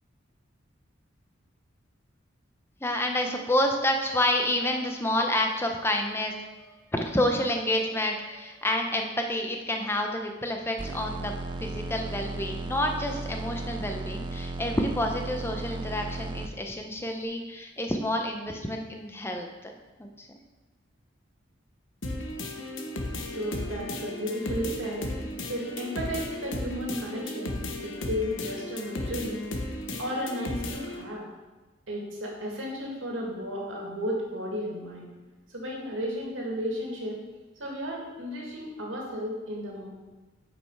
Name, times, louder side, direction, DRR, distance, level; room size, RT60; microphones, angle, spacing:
voice 1, 2.8-11.3 11.6-19.7 20.0-20.3, left 1 dB, 10° left, 3 dB, 0.7 m, -29 dB
sound 1, 10.8-16.5, right 2 dB, 25° right, 0.4 m, -35 dB
sound 2, 22.0-31.0, left 1 dB, 75° left, 1.0 m, -35 dB
voice 2, 23.1-25.1 25.5-29.4 30.0-31.3 31.9-35.1 35.5-37.2 37.6-39.9, equal, 85° right, -2 dB, 2.2 m, -34 dB
8.5 x 5.5 x 4.8 m, 1.2 s
head